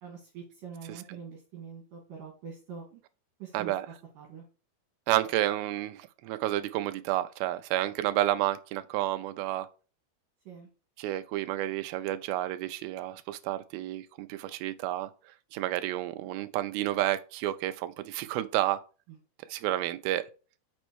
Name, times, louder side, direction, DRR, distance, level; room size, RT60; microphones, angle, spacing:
voice 1, 0.0-3.0 3.4-3.7 4.2-4.4 10.5-10.7, right 6 dB, 60° right, 3.3 m, -44 dB
voice 2, 3.5-3.9 5.1-9.7 11.0-15.1 15.5-18.8 19.5-20.2, right 14 dB, 80° right, 2.4 m, -30 dB
6.2 x 4.4 x 6.2 m
omnidirectional pair, 4.6 m